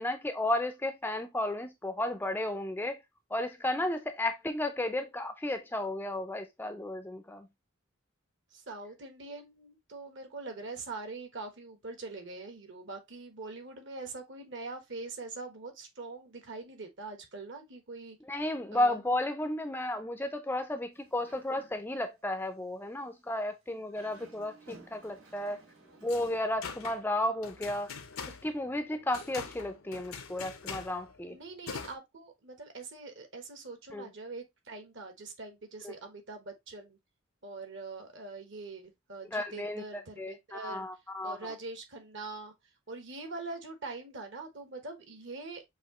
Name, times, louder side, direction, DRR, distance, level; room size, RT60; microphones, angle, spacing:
voice 1, 0.0-3.0 3.3-7.5 18.3-25.6 26.0-27.9 28.4-31.4 33.9-34.1 35.8-35.9 39.3-39.8 40.2-41.4, left 1 dB, 10° left, 0.4 m, -33 dB
voice 2, 8.5-18.2 18.7-19.0 31.3-37.0 37.4-40.8 41.2-42.5 42.9-45.6, right 3 dB, 60° right, 1.2 m, -43 dB
Dog, 20.9-22.0 22.4-22.6 23.8-26.5, right 2 dB, 90° right, 2.4 m, -56 dB
sound 1, 26.0-31.9, left 6 dB, 80° left, 0.8 m, -44 dB
6.3 x 2.8 x 2.9 m
head